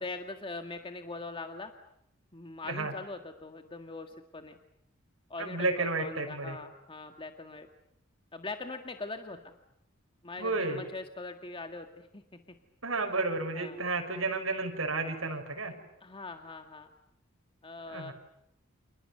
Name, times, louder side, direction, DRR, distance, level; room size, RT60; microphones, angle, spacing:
voice 1, 0.0-1.7 2.3-4.6 5.3-7.7 8.3-9.5 10.2-12.2 12.5-12.6 13.5-13.8 16.0-16.9 17.6-18.1, left 3 dB, 25° left, 6 dB, 1.8 m, -42 dB
voice 2, 5.4-6.6 10.4-10.8 12.8-15.7 17.9-18.1, right 3 dB, 85° right, 4 dB, 6.2 m, -32 dB
30.0 x 28.5 x 6.9 m, 0.80 s
head